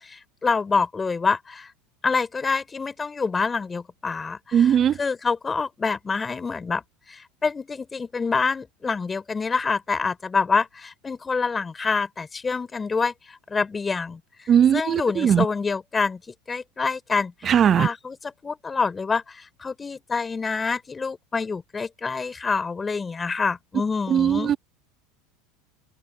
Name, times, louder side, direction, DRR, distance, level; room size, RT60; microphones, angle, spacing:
voice 1, 0.0-1.7 2.0-4.7 5.0-6.8 7.1-16.2 16.5-18.2 18.4-24.5, left 4 dB, 20° left, 3.2 m, -27 dB
voice 2, 4.5-5.0 14.5-15.5 17.4-17.9 24.1-24.6, right 9 dB, 35° right, 0.6 m, -19 dB
hypercardioid pair, 90°, 0 cm